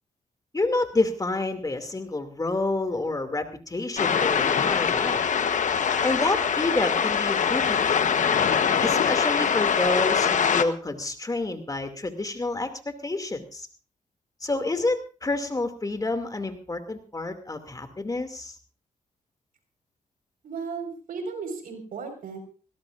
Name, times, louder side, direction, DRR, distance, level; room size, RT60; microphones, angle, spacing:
voice 1, 0.5-5.3 6.0-8.2 8.8-13.7 14.4-18.5, left 2 dB, 25° left, 7 dB, 2.5 m, -29 dB
sound 1, 4.0-10.6, left 7 dB, 60° left, 1.2 m, -23 dB
voice 2, 20.4-22.4, right 5 dB, 80° right, 5 dB, 5.0 m, -35 dB
20.5 x 17.5 x 2.6 m, 0.37 s
cardioid pair, 75°, 14 cm